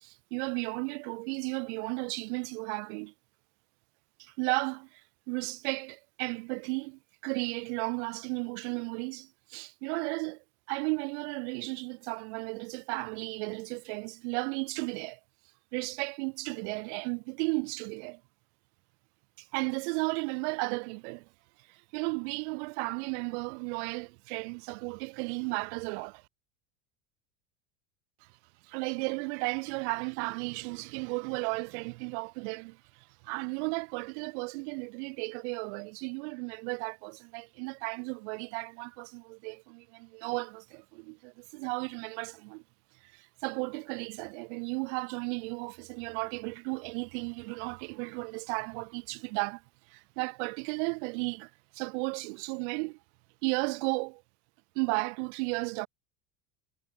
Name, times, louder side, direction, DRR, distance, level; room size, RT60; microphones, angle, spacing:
voice 1, 0.0-3.1 4.2-5.0 5.3-15.2 15.7-18.2 19.4-21.3 21.7-26.2 28.7-42.6 43.0-49.6 49.9-53.0 53.4-54.2 54.7-55.9, right 33 dB, 70° right, 0.9 m, -34 dB
supercardioid pair, 140°, 36 cm